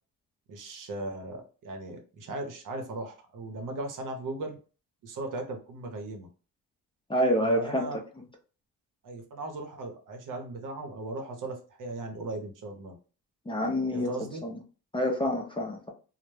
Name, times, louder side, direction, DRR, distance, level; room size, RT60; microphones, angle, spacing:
voice 1, 0.5-4.6 5.0-6.3 7.4-8.0 9.0-13.0 13.9-14.4, right 2 dB, 60° right, 4 dB, 0.8 m, -37 dB
voice 2, 7.1-7.8 13.5-14.1 14.4-14.6 14.9-15.9, equal, 15° left, 1 dB, 0.5 m, -27 dB
2.1 x 2.0 x 3.1 m, 0.36 s
cardioid pair, 80°, 36 cm